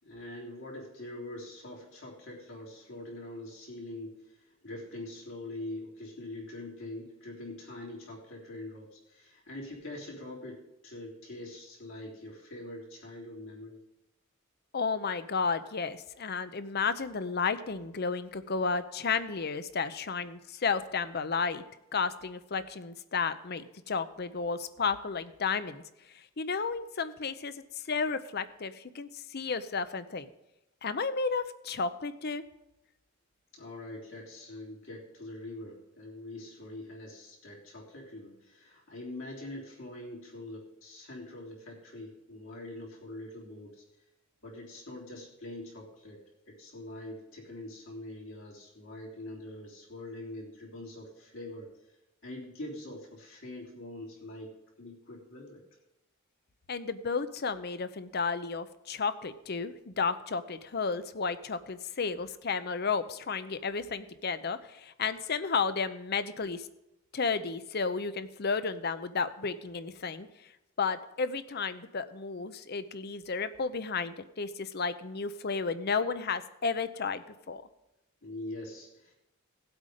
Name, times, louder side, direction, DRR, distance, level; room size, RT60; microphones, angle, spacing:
voice 1, 0.0-13.8 33.5-43.8 44.4-51.7 52.2-55.6 78.2-79.1, left 1 dB, 65° left, -2 dB, 3.6 m, -44 dB
voice 2, 14.7-21.6 21.9-25.8 26.4-27.5 27.9-30.3 30.8-32.4 56.7-66.7 67.1-70.3 70.8-77.6, left 5 dB, 50° left, 12 dB, 0.7 m, -32 dB
17.0 x 8.0 x 5.1 m, 0.90 s
head